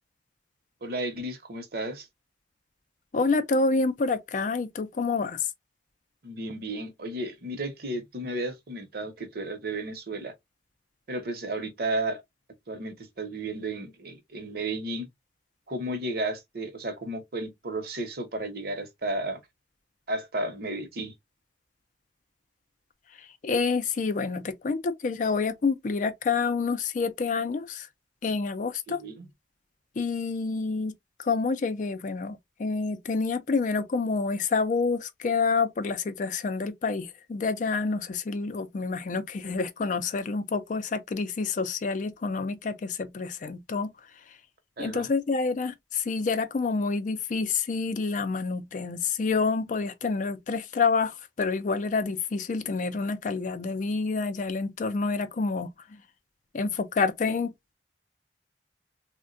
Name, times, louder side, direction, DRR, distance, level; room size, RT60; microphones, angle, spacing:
voice 1, 0.8-2.1 6.2-10.3 11.1-12.2 12.7-15.1 15.7-19.4 20.1-21.1 28.9-29.3 44.8-45.1, right 2 dB, 60° right, 0.8 m, -33 dB
voice 2, 3.1-5.4 23.4-27.9 28.2-29.0 30.0-30.9 31.2-43.9 44.8-55.7 56.5-57.5, left 4 dB, 45° left, 0.4 m, -28 dB
3.4 x 2.1 x 2.5 m
head